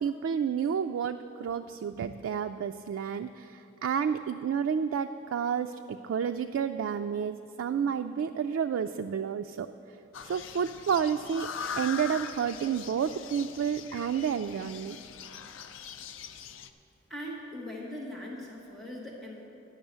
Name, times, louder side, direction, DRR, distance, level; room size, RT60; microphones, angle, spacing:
voice 1, 0.0-9.7 10.3-11.5 11.8-15.0, right 7 dB, 90° right, 7 dB, 0.3 m, -30 dB
sound 1, 10.1-16.7, left 6 dB, 85° left, 0.5 m, -41 dB
voice 2, 17.1-19.4, left 1 dB, ahead, -5 dB, 1.1 m, -40 dB
11.0 x 6.2 x 7.9 m, 2.8 s
head